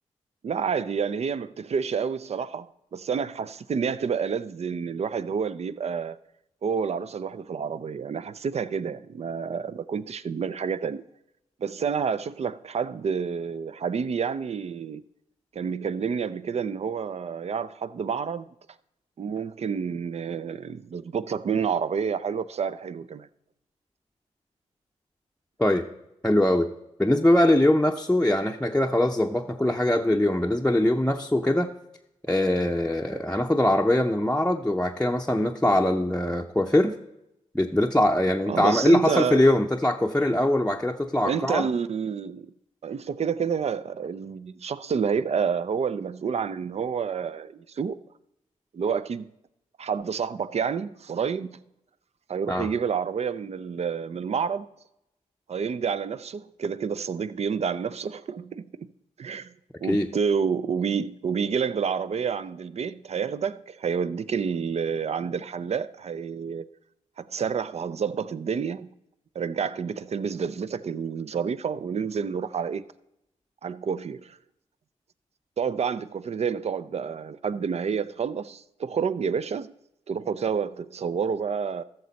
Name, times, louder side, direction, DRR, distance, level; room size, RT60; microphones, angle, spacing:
voice 1, 0.4-2.7 2.9-6.2 6.6-11.0 11.6-15.0 15.5-18.5 19.2-23.3 38.5-39.5 41.2-42.5 42.8-48.0 48.7-49.3 49.8-51.6 52.3-54.7 55.5-58.9 59.2-59.5 59.8-66.7 67.2-68.9 69.3-72.8 73.6-74.4 75.6-79.7 80.1-81.8, right 6 dB, 50° right, 0.5 m, -29 dB
voice 2, 26.2-26.7 27.0-31.7 32.3-36.9 37.5-41.7 52.5-52.7 59.9-60.1, left 1 dB, 5° left, 0.7 m, -22 dB
14.0 x 6.5 x 4.1 m
supercardioid pair, 50°, 14 cm